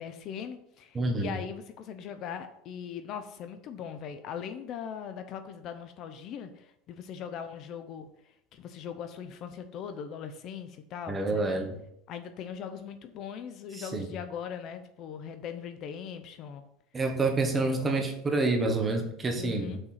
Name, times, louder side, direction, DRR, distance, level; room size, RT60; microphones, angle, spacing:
voice 1, 0.0-11.6 12.1-16.6 17.7-18.0 19.4-19.8, left 7 dB, 40° left, 9 dB, 0.6 m, -40 dB
voice 2, 0.9-1.3 11.1-11.8 13.7-14.1 16.9-19.8, right 3 dB, 15° right, 4 dB, 1.2 m, -28 dB
6.3 x 4.5 x 5.8 m, 0.77 s
cardioid pair, 155°, 0 cm